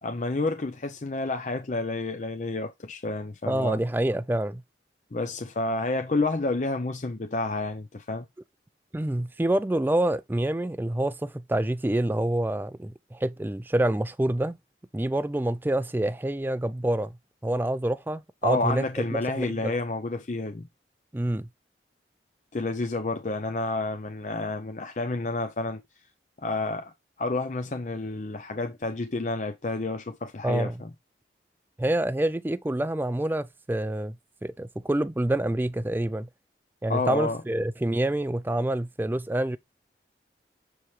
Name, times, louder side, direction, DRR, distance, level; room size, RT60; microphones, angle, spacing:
voice 1, 0.0-3.8 5.1-8.3 18.4-20.7 22.5-25.8 26.4-26.9 27.2-30.9 36.9-37.4, left 2 dB, 40° left, 0.6 m, -30 dB
voice 2, 3.5-4.6 8.9-14.6 14.9-17.1 17.4-19.8 21.1-21.5 30.4-30.8 31.8-34.2 34.4-36.3 36.8-39.6, right 1 dB, 10° right, 0.3 m, -27 dB
7.1 x 4.7 x 3.1 m
head